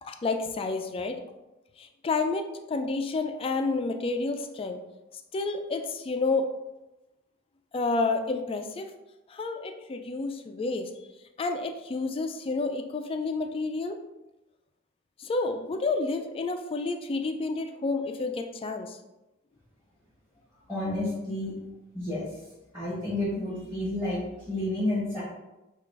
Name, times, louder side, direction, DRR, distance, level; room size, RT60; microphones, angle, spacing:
voice 1, 0.0-1.2 1.8-4.8 5.3-6.5 7.7-8.9 9.3-10.9 11.4-14.0 15.2-19.0, left 3 dB, 30° left, 6 dB, 0.3 m, -30 dB
voice 2, 20.7-21.6 21.9-22.4 22.7-25.2, left 1 dB, 5° right, -12 dB, 1.3 m, -30 dB
3.9 x 2.4 x 4.6 m, 1.0 s
head